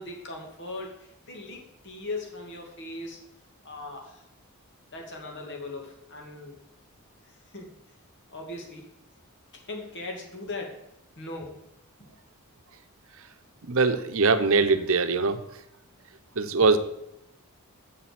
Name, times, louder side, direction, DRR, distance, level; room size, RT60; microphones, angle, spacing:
voice 1, 0.0-3.2 3.6-4.2 4.9-6.6 7.5-7.7 8.3-8.9 9.7-10.8 11.2-11.6, left 2 dB, 55° left, 1 dB, 2.3 m, -39 dB
voice 2, 13.7-15.4 16.4-16.8, right 4 dB, 65° right, 10 dB, 0.8 m, -22 dB
7.0 x 7.0 x 7.6 m, 0.80 s
head